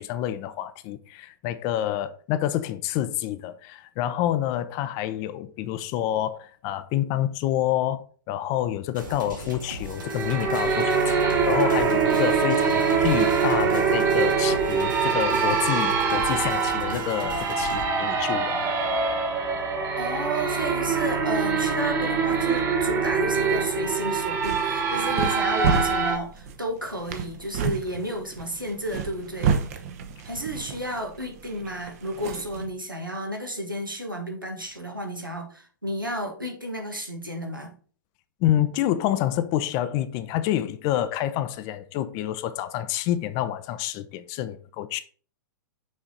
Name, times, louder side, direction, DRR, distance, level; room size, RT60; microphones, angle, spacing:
voice 1, 0.0-11.2 11.5-18.6 38.4-45.0, left 12 dB, 35° left, 0.6 m, -28 dB
sound 1, 8.9-17.8, equal, 75° right, 2.3 m, -38 dB
sound 2, 10.0-26.2, right 5 dB, 25° right, 1.6 m, -24 dB
voice 2, 20.0-29.6 30.2-37.8, equal, 90° right, 1.8 m, -32 dB
sound 3, 24.2-32.7, right 6 dB, 45° right, 1.0 m, -31 dB
6.4 x 4.8 x 4.0 m
figure-of-eight pair, 105°, 11 cm